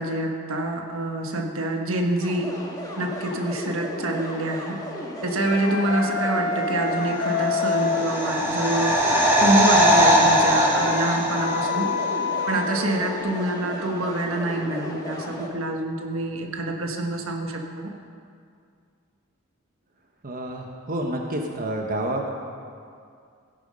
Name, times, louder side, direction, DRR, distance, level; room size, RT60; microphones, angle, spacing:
voice 1, 0.0-2.7 3.0-4.8 5.2-8.9 9.4-11.9 12.5-17.9, right 1 dB, 70° right, 2 dB, 1.4 m, -26 dB
sound 1, 2.2-15.5, equal, 20° left, 1.7 m, -36 dB
Wind instrument woodwind instrument, 5.4-8.0 8.6-13.2, left 4 dB, 65° left, 1.9 m, -29 dB
sound 2, 7.3-12.2 12.4-12.5, equal, 10° right, 2.2 m, -20 dB
voice 2, 20.2-22.3, right 1 dB, 40° right, 1 dB, 1.1 m, -29 dB
16.5 x 9.3 x 5.4 m, 2.3 s
head